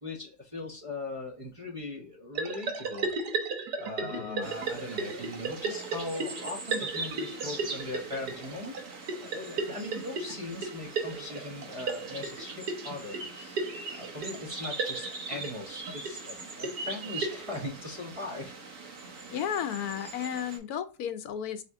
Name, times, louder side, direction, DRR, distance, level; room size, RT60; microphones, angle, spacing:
voice 1, 0.0-3.1 3.8-8.7 9.2-13.6 13.9-18.5 19.2-19.4, left 2 dB, 25° right, -1 dB, 0.8 m, -39 dB
sound 1, 2.4-17.7, right 4 dB, 85° right, 1.3 m, -35 dB
voice 2, 4.1-4.5 19.3-21.6, left 9 dB, 80° left, 10 dB, 1.1 m, -33 dB
sound 2, 4.4-20.6, right 3 dB, 60° right, 1.5 m, -42 dB
4.2 x 3.3 x 3.5 m, 0.31 s
omnidirectional pair, 1.6 m